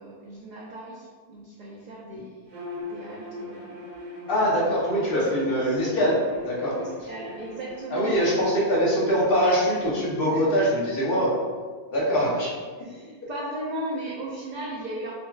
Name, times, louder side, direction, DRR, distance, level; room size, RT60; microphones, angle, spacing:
voice 1, 0.0-2.4 2.9-3.7 5.0-5.8 6.8-8.7 10.3-10.4 12.8-15.1, right 1 dB, 50° right, -5 dB, 0.6 m, -37 dB
Bowed string instrument, 2.5-9.2, left 2 dB, 85° right, 1.2 m, -41 dB
voice 2, 4.3-6.2 6.4-6.7 7.9-11.3 11.9-12.5, equal, 60° left, -6 dB, 1.1 m, -23 dB
5.2 x 2.3 x 2.3 m, 1.5 s
omnidirectional pair, 1.1 m